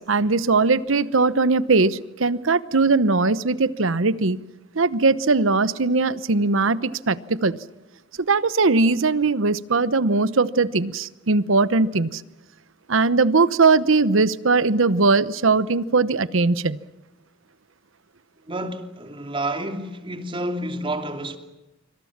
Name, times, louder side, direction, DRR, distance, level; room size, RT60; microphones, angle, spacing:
voice 1, 0.0-4.4 4.7-7.6 8.3-12.2 12.9-16.8, right 3 dB, 75° right, 1.0 m, -20 dB
voice 2, 18.5-21.4, right 1 dB, 25° right, 2.8 m, -29 dB
26.0 x 25.5 x 7.4 m
head